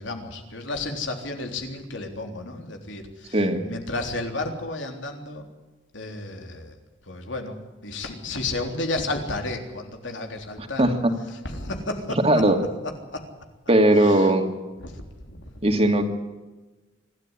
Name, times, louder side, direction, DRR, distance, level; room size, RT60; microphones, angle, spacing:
voice 1, 0.0-5.5 5.9-6.8 7.0-7.6 7.8-10.8 11.3-12.4 13.1-13.2 14.0-14.3 14.8-15.5, left 2 dB, 85° left, 4 dB, 3.6 m, -32 dB
voice 2, 10.8-11.1 12.2-12.6 13.7-14.5 15.6-16.0, right 1 dB, 30° right, 5 dB, 2.6 m, -18 dB
25.5 x 13.0 x 9.9 m, 1.2 s
head